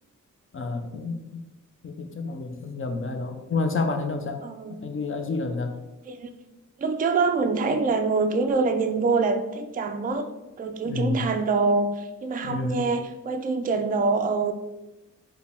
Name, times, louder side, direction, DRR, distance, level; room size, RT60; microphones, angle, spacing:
voice 1, 0.5-1.5 1.8-4.4 4.8-5.8 10.8-11.3 12.4-12.9, left 3 dB, 40° left, 6 dB, 0.5 m, -29 dB
voice 2, 4.4-4.9 6.1-6.3 6.8-10.3 10.6-14.5, right 4 dB, 30° right, 7 dB, 0.3 m, -25 dB
4.7 x 2.2 x 3.4 m, 1.0 s
cardioid pair, 60°, 32 cm